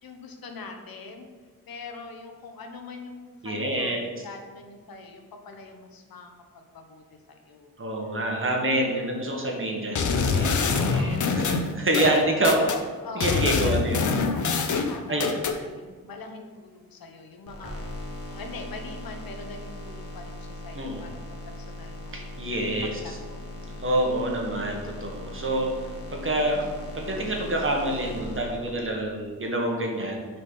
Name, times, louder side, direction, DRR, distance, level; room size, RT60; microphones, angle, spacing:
voice 1, 0.0-1.3 1.7-7.7 8.1-8.2 8.5-9.1 10.6-11.7 12.4-12.7 13.0-17.8 18.3-21.1 21.5-22.2 22.8-23.5 26.4-26.9, left 3 dB, 75° left, 4 dB, 1.0 m, -43 dB
voice 2, 3.4-4.0 7.8-12.6 13.1-14.0 15.1-15.3 20.7-21.1 22.1-23.2 23.8-25.7 26.1-26.6 26.9-30.3, right 1 dB, 35° right, 0 dB, 1.5 m, -27 dB
sound 1, 10.0-12.8 13.2-15.6, left 4 dB, 55° left, 0.7 m, -25 dB
sound 2, 17.5-29.1, left 1 dB, 40° left, 1.5 m, -39 dB
6.7 x 4.3 x 5.5 m, 1.5 s
wide cardioid pair, 100°, 36 cm